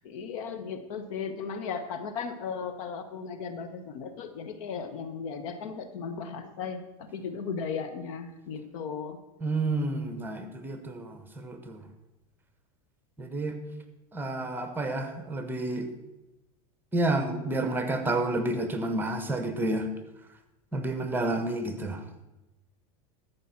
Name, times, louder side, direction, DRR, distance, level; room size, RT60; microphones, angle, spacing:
voice 1, 0.0-9.2, left 6 dB, 70° left, 8 dB, 1.2 m, -36 dB
voice 2, 9.4-11.8 13.2-13.6 14.1-15.9 16.9-19.9 20.7-22.0, right 2 dB, 10° right, 8 dB, 1.3 m, -30 dB
13.0 x 5.2 x 5.9 m, 1.0 s
hypercardioid pair, 105°, 18 cm